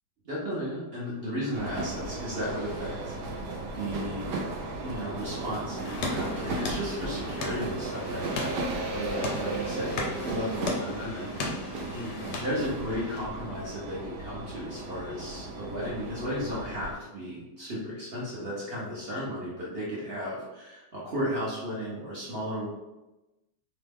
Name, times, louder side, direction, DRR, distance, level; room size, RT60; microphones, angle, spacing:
voice 1, 0.2-4.4 4.8-22.7, equal, 55° right, -7 dB, 0.7 m, -35 dB
sound 1, 1.5-16.9, right 2 dB, 75° right, 1.0 m, -36 dB
sound 2, 5.8-13.2, left 2 dB, 80° left, 1.2 m, -37 dB
3.0 x 2.1 x 3.3 m, 1.0 s
omnidirectional pair, 1.8 m